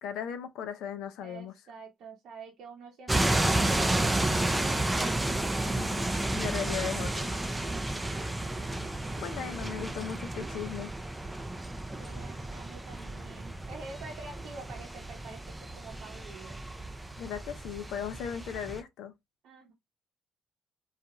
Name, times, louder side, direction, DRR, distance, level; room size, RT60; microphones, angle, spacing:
voice 1, 0.0-1.5 5.6-7.3 9.2-10.9 17.2-19.1, left 8 dB, 85° left, 0.4 m, -37 dB
voice 2, 1.2-5.2 7.7-8.1 8.4-8.5 11.9-16.6 19.4-19.7, right 4 dB, 70° right, 0.7 m, -48 dB
sound 1, 3.1-18.8, right 1 dB, 10° right, 0.4 m, -32 dB
2.4 x 2.4 x 2.8 m
cardioid pair, 95°, 0 cm